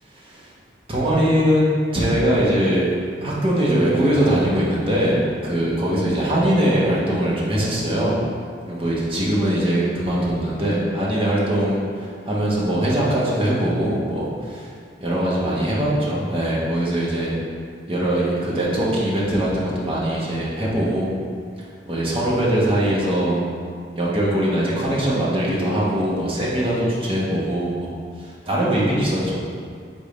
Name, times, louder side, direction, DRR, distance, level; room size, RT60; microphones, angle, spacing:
voice 1, 0.9-1.7 1.9-2.9 3.2-8.1 8.7-14.7 15.0-17.4 17.9-21.1 21.6-23.4 23.9-27.9 28.2-29.6, right 1 dB, 30° right, -5 dB, 1.0 m, -21 dB
5.2 x 3.6 x 5.0 m, 2.2 s
head